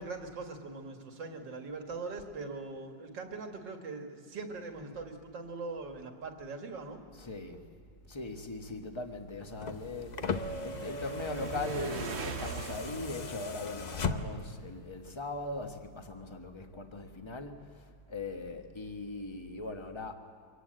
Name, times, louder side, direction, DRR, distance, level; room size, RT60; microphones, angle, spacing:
voice 1, 0.0-7.0, right 3 dB, 70° right, 4 dB, 2.5 m, -41 dB
voice 2, 7.1-7.6 8.1-10.1 10.6-17.6 18.1-20.1, left 2 dB, 15° left, 5 dB, 1.1 m, -39 dB
sound 1, 9.0-14.5, right 5 dB, 50° right, 0.9 m, -43 dB
sound 2, 9.5-14.6 15.8-15.9, left 4 dB, 50° left, 0.5 m, -38 dB
24.0 x 18.0 x 7.7 m, 2.2 s
omnidirectional pair, 2.0 m